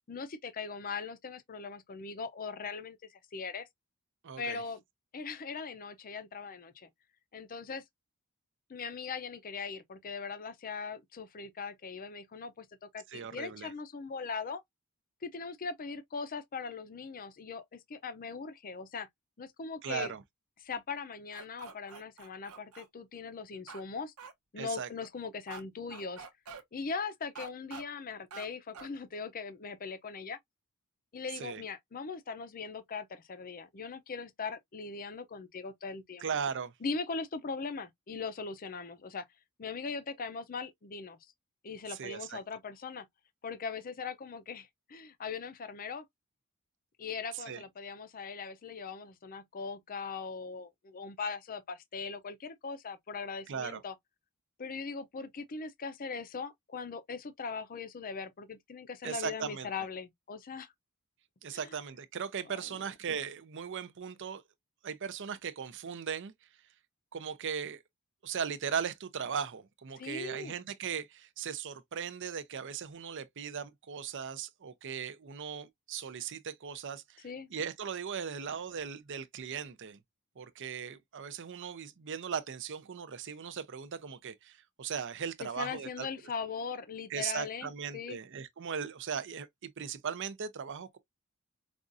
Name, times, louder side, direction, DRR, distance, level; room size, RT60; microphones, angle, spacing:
voice 1, 0.1-3.7 4.4-4.8 5.1-6.9 7.3-7.8 8.7-12.7 12.9-14.6 15.2-19.1 19.4-20.1 20.6-24.1 24.5-26.3 26.7-30.4 31.1-36.3 36.8-39.3 39.6-41.2 41.6-43.1 43.4-46.0 47.0-53.9 54.6-60.7 61.5-61.7 62.5-62.9 70.0-70.6 77.2-77.5 85.4-88.2, left 5 dB, 40° left, 0.5 m, -40 dB
voice 2, 4.2-4.6 13.1-13.7 19.8-20.2 24.6-24.9 31.4-31.6 36.2-36.7 41.9-42.4 47.3-47.6 53.5-53.8 59.0-59.7 61.4-64.4 64.8-66.3 67.1-67.8 68.2-80.0 80.4-86.1 87.1-91.0, right 7 dB, 55° right, 0.5 m, -38 dB
sound 1, 21.3-22.9 23.7-23.8 24.2-24.3 25.5-25.6 25.9-26.6 27.4-27.8 28.3-28.5 28.7-28.9, right 5 dB, 80° right, 0.8 m, -46 dB
5.0 x 2.4 x 2.5 m
head